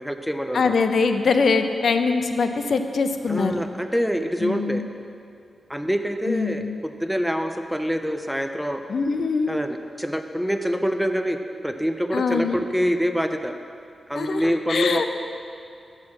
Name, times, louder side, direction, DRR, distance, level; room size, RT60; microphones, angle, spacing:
voice 1, 0.0-0.7 3.3-4.8 5.7-8.8 9.5-11.4 11.6-13.5 14.1-15.0, equal, ahead, 6 dB, 0.4 m, -25 dB
voice 2, 0.5-3.5 4.4-4.9 6.3-6.8 8.9-9.6 12.1-12.6 14.1-15.0, left 4 dB, 60° left, 7 dB, 0.5 m, -23 dB
7.2 x 6.4 x 6.3 m, 2.5 s
wide cardioid pair, 135°, 0 cm